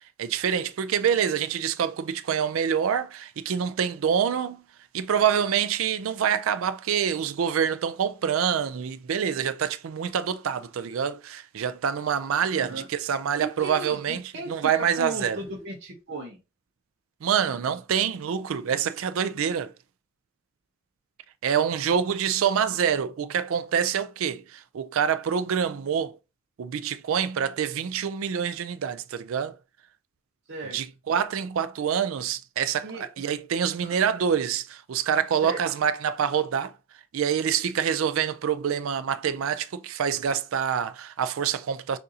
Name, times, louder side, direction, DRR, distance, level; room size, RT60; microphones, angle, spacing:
voice 1, 0.2-4.6 4.9-14.2 14.5-15.4 17.2-19.7 21.4-26.2 26.6-29.6 30.7-36.7 37.1-42.0, right 8 dB, 75° right, 0.4 m, -26 dB
voice 2, 13.4-16.4 30.5-30.8 32.8-33.0 33.8-33.9 35.3-35.6, right 2 dB, 55° right, 0.8 m, -36 dB
6.4 x 2.6 x 2.7 m
head